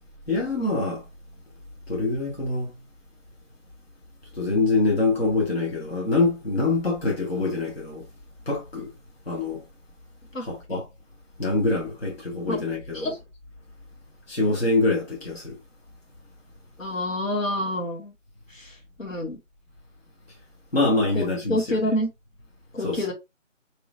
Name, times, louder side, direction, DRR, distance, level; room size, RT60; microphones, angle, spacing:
voice 1, 0.3-1.0 1.9-2.7 4.4-8.0 8.5-8.9 9.3-9.6 10.5-10.8 11.4-13.1 14.3-15.6 20.7-21.6 22.8-23.0, left 3 dB, 50° left, 1.3 m, -24 dB
voice 2, 16.8-18.1 18.5-19.4 21.1-22.1 22.7-23.1, left 1 dB, 80° left, 1.6 m, -28 dB
4.0 x 3.0 x 2.5 m
figure-of-eight pair, 175°, 39 cm